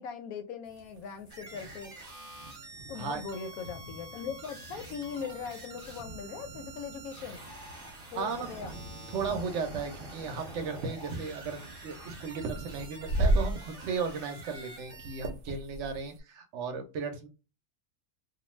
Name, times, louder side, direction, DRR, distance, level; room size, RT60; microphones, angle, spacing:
voice 1, 0.0-1.9 2.9-7.4 8.1-8.8, left 6 dB, 85° left, 1.0 m, -40 dB
sound 1, 0.7-16.2, right 1 dB, 80° right, 0.5 m, -38 dB
sound 2, 1.3-15.3, right 2 dB, 30° right, 0.8 m, -48 dB
voice 2, 9.1-17.3, right 5 dB, 65° right, 0.9 m, -35 dB
2.5 x 2.2 x 3.0 m
omnidirectional pair, 1.5 m